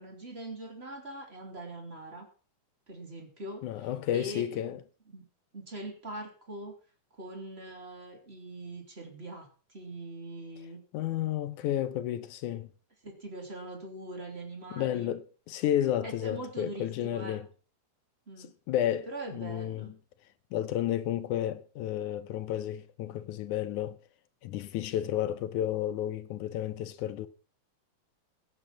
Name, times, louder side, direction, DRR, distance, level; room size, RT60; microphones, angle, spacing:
voice 1, 0.0-2.3 2.9-4.7 5.1-5.2 5.5-6.8 7.1-9.5 9.7-10.8 13.0-15.1 16.0-17.4 18.3-18.5 19.1-19.9, right 1 dB, 20° right, 3.2 m, -42 dB
voice 2, 3.6-4.8 10.9-12.7 14.7-17.5 18.4-19.9 20.5-24.0 24.4-27.3, left 11 dB, 75° left, 2.1 m, -32 dB
16.0 x 9.0 x 5.9 m
omnidirectional pair, 3.8 m